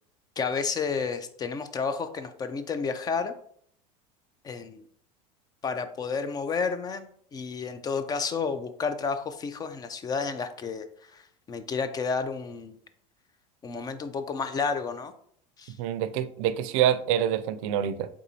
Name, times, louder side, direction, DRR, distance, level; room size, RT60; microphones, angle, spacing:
voice 1, 0.4-3.3 4.4-4.8 5.6-10.9 11.1-12.8 13.6-15.1 15.6-15.8, left 5 dB, 25° left, 10 dB, 0.3 m, -31 dB
voice 2, 15.8-18.1, right 10 dB, 70° right, 13 dB, 0.4 m, -26 dB
4.0 x 3.6 x 2.7 m, 0.62 s
supercardioid pair, 115°, 17 cm